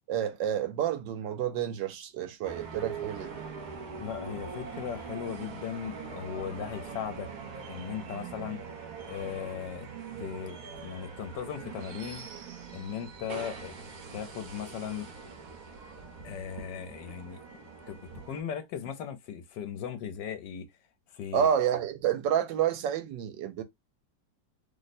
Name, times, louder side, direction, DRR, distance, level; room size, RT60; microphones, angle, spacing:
voice 1, 0.1-3.4 21.3-23.6, right 9 dB, 80° right, 1.3 m, -29 dB
sound 1, 2.4-18.4, right 6 dB, 60° right, 1.1 m, -42 dB
voice 2, 4.0-7.3 7.6-8.6 9.1-9.9 10.2-12.3 12.7-13.7 14.1-15.1 16.2-17.4 17.9-18.0 18.3-20.7 21.1-21.5, left 8 dB, 75° left, 1.3 m, -37 dB
3.1 x 2.1 x 4.0 m
omnidirectional pair, 2.0 m